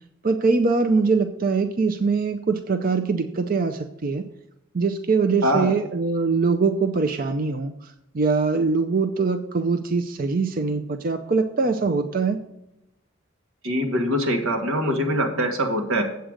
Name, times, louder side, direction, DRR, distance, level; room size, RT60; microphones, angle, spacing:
voice 1, 0.2-4.2 4.7-12.4, right 4 dB, 45° right, 8 dB, 0.5 m, -23 dB
voice 2, 5.4-5.8 13.6-16.0, equal, 90° right, 3 dB, 1.7 m, -23 dB
8.0 x 7.7 x 5.0 m, 0.85 s
head